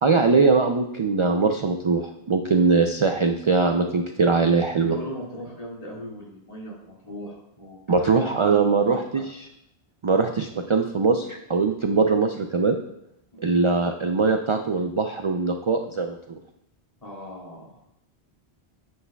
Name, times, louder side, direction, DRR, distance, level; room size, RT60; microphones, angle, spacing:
voice 1, 0.0-4.9 7.9-9.2 10.0-12.8 13.4-16.4, right 4 dB, 55° right, 5 dB, 0.3 m, -21 dB
voice 2, 4.8-9.0 13.3-13.6 17.0-17.9, equal, 35° left, -5 dB, 2.3 m, -38 dB
9.5 x 8.0 x 2.3 m, 0.78 s
omnidirectional pair, 1.1 m